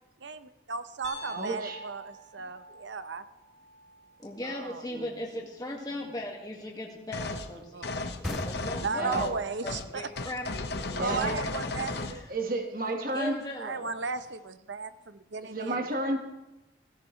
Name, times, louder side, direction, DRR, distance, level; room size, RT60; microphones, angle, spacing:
voice 1, 0.2-3.2 4.4-4.9 7.5-8.2 8.8-10.1 11.0-12.2 13.6-15.9, right 4 dB, 80° right, 11 dB, 0.8 m, -36 dB
Piano, 1.0-5.1, left 1 dB, 40° left, 2.9 m, -47 dB
voice 2, 1.2-1.8 4.9-5.1 6.0-6.1 8.9-9.2 10.9-11.3 12.3-13.4 15.4-16.2, right 2 dB, 50° right, 3 dB, 1.5 m, -31 dB
voice 3, 4.2-9.4 9.6-10.9 11.2-11.3 12.1-12.2 13.1-13.9, left 1 dB, 20° left, -1 dB, 1.8 m, -38 dB
sound 1, 7.1-7.5 7.8-9.4 9.7-9.9 10.2-12.2, left 3 dB, 60° left, 0.9 m, -34 dB
sound 2, 8.2-11.6, equal, ahead, 0.4 m, -42 dB
16.5 x 16.5 x 3.2 m, 0.99 s
head